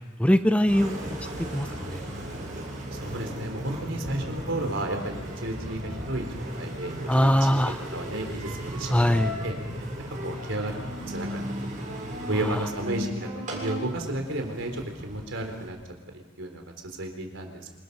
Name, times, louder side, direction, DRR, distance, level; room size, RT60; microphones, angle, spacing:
voice 1, 0.2-1.0 1.5-2.0 7.1-7.9 8.9-9.4 12.3-12.7, equal, 5° left, 10 dB, 0.6 m, -22 dB
Engine, 0.7-15.7, equal, 40° right, 7.0 m, -36 dB
voice 2, 2.9-7.3 7.9-9.1 9.4-9.5 10.2-11.7 12.2-15.8 16.4-16.7 17.0-17.6, right 1 dB, 75° right, 4 dB, 4.1 m, -33 dB
27.0 x 20.5 x 5.6 m, 1.3 s
head